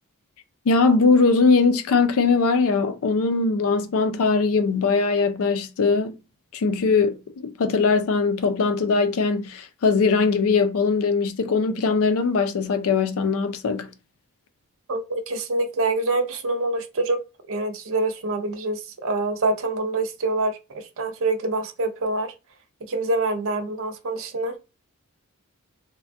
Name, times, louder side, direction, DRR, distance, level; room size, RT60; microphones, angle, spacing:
voice 1, 0.7-6.2 6.5-13.9, left 4 dB, 65° left, 0.4 m, -21 dB
voice 2, 14.9-17.2 17.5-22.3 22.9-24.6, right 2 dB, 65° right, 0.6 m, -26 dB
3.3 x 2.1 x 2.5 m
head